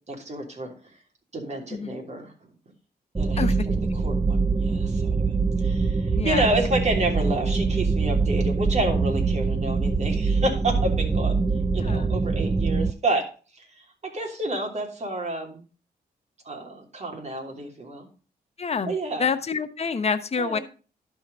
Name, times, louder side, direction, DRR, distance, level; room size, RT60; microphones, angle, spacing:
voice 1, 0.1-0.7 1.3-2.3 3.2-5.3 5.6-11.4 11.7-15.6 16.4-18.1 18.8-19.3 20.4-20.6, right 2 dB, 40° right, 1 dB, 3.1 m, -30 dB
sound 1, 3.1-12.9, right 4 dB, 20° right, 0.5 m, -24 dB
voice 2, 6.1-6.5 9.5-9.6 11.8-12.1 18.6-18.9 19.2-20.6, left 5 dB, 40° left, 9 dB, 1.0 m, -27 dB
11.5 x 4.8 x 5.3 m, 0.36 s
cardioid pair, 70°, 17 cm